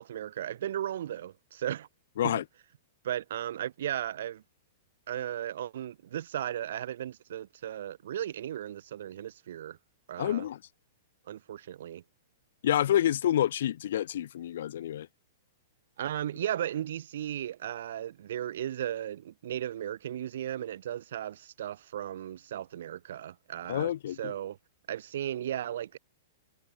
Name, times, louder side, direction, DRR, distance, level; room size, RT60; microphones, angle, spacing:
voice 1, 0.0-1.9 2.2-2.4 3.0-4.4 5.1-9.8 10.1-10.5 11.3-12.0 16.0-23.9 24.2-24.6 24.9-26.0, right 11 dB, 70° right, 5.2 m, -36 dB
voice 2, 10.2-10.6 12.6-15.1 23.7-24.3, left 11 dB, 70° left, 3.6 m, -28 dB
hypercardioid pair, 145°, 0 cm